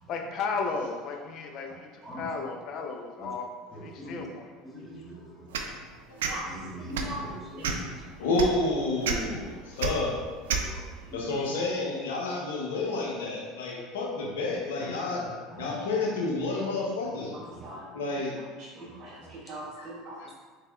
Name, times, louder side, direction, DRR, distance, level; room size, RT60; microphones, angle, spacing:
voice 1, 0.1-3.5 3.7-4.5, left 4 dB, 55° left, 3 dB, 0.5 m, -34 dB
voice 2, 3.7-4.3 4.6-5.5 6.5-7.9 9.2-9.4 10.5-10.8 11.1-11.2 14.8-15.2 15.5-15.8 18.8-19.0, equal, ahead, -6 dB, 1.1 m, -42 dB
sound 1, 5.5-5.7 6.2-6.3 6.9-7.1 7.6-7.9 8.4-8.5 9.0-9.2 9.8-9.9 10.5-10.6, right 7 dB, 85° right, 0.3 m, -28 dB
voice 3, 6.3-6.7 7.0-7.8 17.3-17.9 18.6-20.1, right 1 dB, 45° right, -5 dB, 0.7 m, -41 dB
voice 4, 8.2-10.1 11.1-15.2 15.6-17.3 17.9-18.3, left 2 dB, 85° left, -2 dB, 0.7 m, -29 dB
4.0 x 3.3 x 2.3 m, 1.5 s
hypercardioid pair, 90°, 0 cm